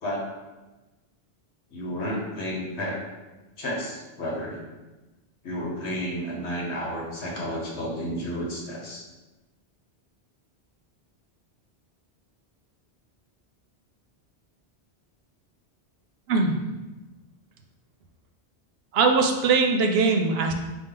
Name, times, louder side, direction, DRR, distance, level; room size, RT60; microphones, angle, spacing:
voice 1, 1.7-3.0 3.6-4.6 5.4-9.0, equal, 85° left, -2 dB, 1.3 m, -31 dB
voice 2, 18.9-20.5, right 4 dB, 70° right, 3 dB, 0.8 m, -21 dB
5.1 x 2.4 x 3.7 m, 1.1 s
omnidirectional pair, 1.1 m